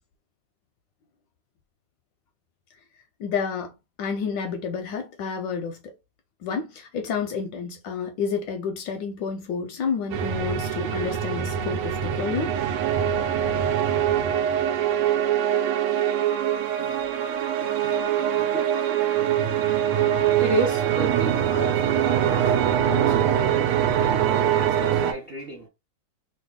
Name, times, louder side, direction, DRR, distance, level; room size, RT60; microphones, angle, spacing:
voice 1, 3.2-3.7 4.0-5.9 6.4-12.5, left 6 dB, 75° left, 1.1 m, -30 dB
sound 1, 10.1-25.1, right 10 dB, 85° right, 1.5 m, -23 dB
voice 2, 16.4-25.7, right 2 dB, 60° right, 0.6 m, -34 dB
3.3 x 2.2 x 3.6 m
omnidirectional pair, 2.3 m